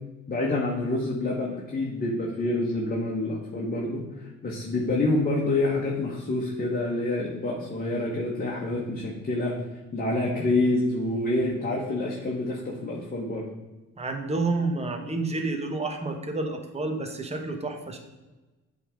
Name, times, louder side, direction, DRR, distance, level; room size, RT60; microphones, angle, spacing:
voice 1, 0.3-9.5 9.9-13.4, left 2 dB, 30° left, -3 dB, 1.3 m, -27 dB
voice 2, 14.0-18.0, right 3 dB, 20° right, 4 dB, 1.1 m, -29 dB
8.2 x 3.7 x 5.1 m, 1.1 s
cardioid pair, 90°, 30 cm